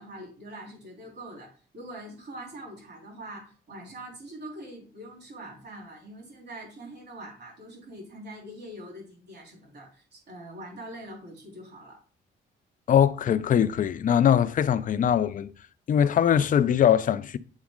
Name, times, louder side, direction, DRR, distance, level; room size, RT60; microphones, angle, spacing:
voice 1, 0.0-12.0, right 1 dB, 55° right, 3.3 m, -43 dB
voice 2, 12.9-15.5 15.9-17.4, left 9 dB, 45° left, 0.4 m, -22 dB
7.3 x 4.1 x 3.7 m
cardioid pair, 90°, 20 cm